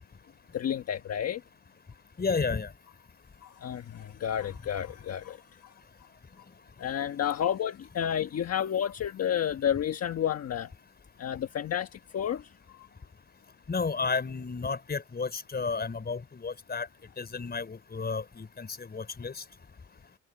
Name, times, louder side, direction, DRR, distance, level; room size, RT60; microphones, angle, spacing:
voice 1, 0.5-1.4 3.4-5.4 6.8-10.7 11.2-12.4, left 9 dB, 55° left, 1.4 m, -30 dB
voice 2, 2.2-2.7 13.7-16.9 17.2-19.4, left 4 dB, 30° left, 4.9 m, -32 dB
cardioid pair, 90°, 30 cm